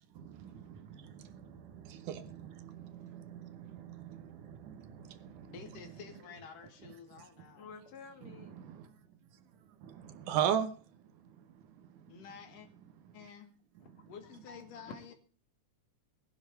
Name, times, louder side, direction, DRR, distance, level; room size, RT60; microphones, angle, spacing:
voice 1, 0.2-5.5 8.4-8.9 9.8-10.7 11.9-12.1, right 9 dB, 75° right, 2.5 m, -38 dB
voice 2, 5.5-7.7 12.1-12.7 13.1-13.5 14.1-15.1, left 7 dB, 80° left, 3.5 m, -50 dB
voice 3, 7.6-8.7 13.8-14.6 15.1-15.2, left 5 dB, 60° left, 2.6 m, -53 dB
19.5 x 10.5 x 4.5 m
omnidirectional pair, 3.7 m